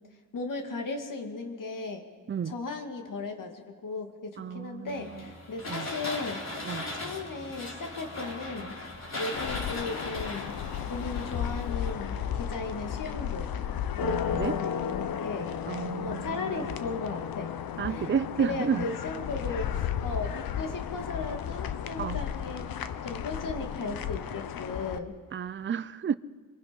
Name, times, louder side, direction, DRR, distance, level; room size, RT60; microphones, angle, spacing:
voice 1, 0.3-2.1 2.5-8.8 9.1-10.6 10.9-13.5 13.9-15.5 16.0-17.5 17.9-18.1 18.4-22.8 23.0-25.1, left 3 dB, 65° left, 4 dB, 2.5 m, -36 dB
voice 2, 4.4-5.3 5.7-5.9 6.6-6.9 14.1-14.6 15.7-16.7 17.8-18.9 22.0-22.2 25.3-26.1, right 7 dB, 35° right, 15 dB, 0.5 m, -32 dB
sound 1, 4.9-12.5, left 2 dB, 50° left, 4.1 m, -38 dB
sound 2, 9.3-25.0, left 9 dB, 85° left, 1.0 m, -34 dB
24.5 x 23.5 x 5.4 m, 1.5 s
cardioid pair, 90°, 35 cm